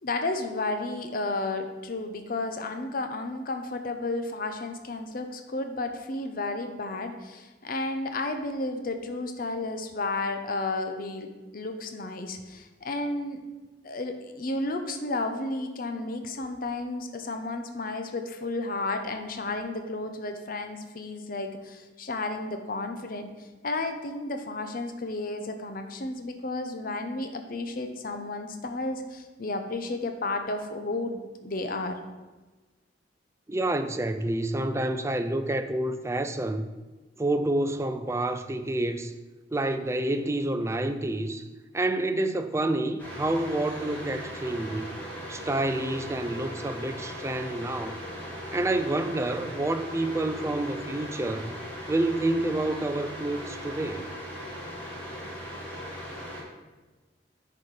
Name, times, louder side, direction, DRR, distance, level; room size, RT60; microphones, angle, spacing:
voice 1, 0.0-13.4 13.8-23.3 23.6-32.0, left 2 dB, 50° left, 0.8 m, -32 dB
voice 2, 33.5-36.7 37.2-39.1 39.5-41.4 41.7-44.9 45.3-48.0 48.5-51.5 51.9-54.1, right 1 dB, 15° right, 0.4 m, -28 dB
sound 1, 43.0-56.4, equal, 10° left, 2.2 m, -39 dB
9.7 x 4.3 x 4.8 m
head